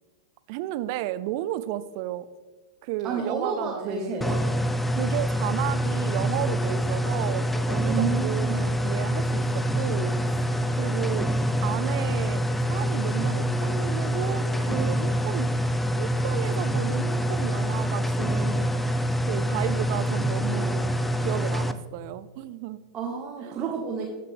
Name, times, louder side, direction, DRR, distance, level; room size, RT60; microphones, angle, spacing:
voice 1, 0.5-2.3 2.8-4.2 5.0-10.2 10.7-11.3 11.6-12.4 12.7-15.5 16.0-21.0 21.2-22.8 23.5-23.6, right 14 dB, 50° right, 15 dB, 0.4 m, -33 dB
voice 2, 3.0-4.4 7.8-8.8 22.9-24.1, right 6 dB, 30° right, 0 dB, 1.2 m, -30 dB
sound 1, 4.2-21.7, equal, 5° left, 0.5 m, -26 dB
14.5 x 5.8 x 3.3 m, 1.3 s
figure-of-eight pair, 95°, 2 cm